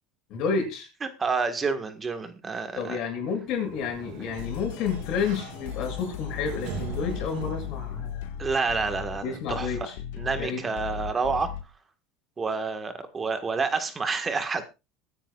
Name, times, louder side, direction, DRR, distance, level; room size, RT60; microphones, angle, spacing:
voice 1, 0.3-0.9 2.7-8.3 9.2-10.0 10.4-10.7, left 5 dB, 55° left, 0 dB, 8.0 m, -30 dB
voice 2, 1.0-3.0 8.4-11.5 12.4-14.6, right 4 dB, 20° right, 8 dB, 1.6 m, -29 dB
Sliding door, 3.4-8.3, right 4 dB, 65° right, 5.6 m, -41 dB
sound 1, 4.3-11.6, left 11 dB, 80° left, 1.6 m, -37 dB
22.5 x 10.0 x 2.5 m, 0.28 s
supercardioid pair, 140°, 0 cm